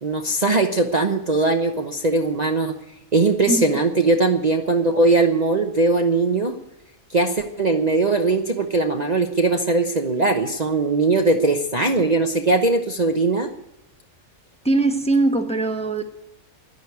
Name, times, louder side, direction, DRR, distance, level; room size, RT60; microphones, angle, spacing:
voice 1, 0.0-2.7 3.1-6.5 7.1-13.5, right 3 dB, 35° right, 3 dB, 0.9 m, -20 dB
voice 2, 3.5-3.8 14.6-16.0, right 2 dB, 5° left, 4 dB, 1.1 m, -21 dB
11.5 x 10.5 x 9.5 m, 0.89 s
omnidirectional pair, 1.5 m